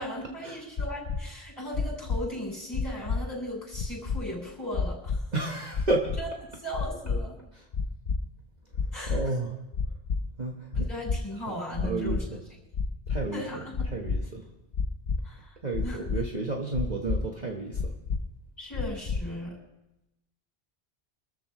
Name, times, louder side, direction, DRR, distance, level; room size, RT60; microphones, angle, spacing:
voice 1, 0.0-5.2 6.2-6.3 6.6-7.4 8.9-9.2 10.7-12.2 13.3-13.9 15.2-15.6 15.8-16.0 18.6-19.5, equal, 20° left, -2 dB, 7.4 m, -37 dB
sound 1, 0.8-1.2 1.7-2.2 2.7-3.2 3.7-4.2 4.7-5.2 5.7-6.2 6.7-7.2 7.7-8.2 8.7-9.2 9.7-10.2 10.7-11.2 11.7-12.2 12.7-13.2 13.7-14.2 14.7-15.2 15.7-16.2 16.7-17.2 17.7-18.2 18.7-19.2, left 5 dB, 55° left, 1.0 m, -28 dB
voice 2, 5.3-6.1 9.1-9.6 10.4-10.9 11.5-11.6 11.8-12.4 13.1-14.4 15.6-17.9, right 2 dB, 40° right, 0 dB, 1.4 m, -31 dB
26.0 x 14.0 x 3.1 m, 0.93 s
omnidirectional pair, 1.1 m